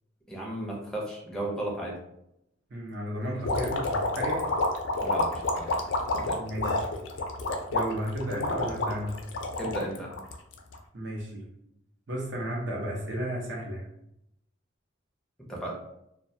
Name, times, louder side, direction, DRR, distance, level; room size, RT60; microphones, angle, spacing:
voice 1, 0.3-2.0 5.0-5.8 6.1-6.4 9.6-10.2 15.5-15.8, right 1 dB, 5° left, -3 dB, 0.5 m, -35 dB
voice 2, 2.7-4.5 6.4-6.8 7.7-9.2 10.9-11.5 12.1-13.9, equal, 65° right, -2 dB, 0.7 m, -33 dB
sound 1, 3.4-10.8, left 2 dB, 70° left, 0.4 m, -29 dB
2.2 x 2.2 x 2.6 m, 0.79 s
head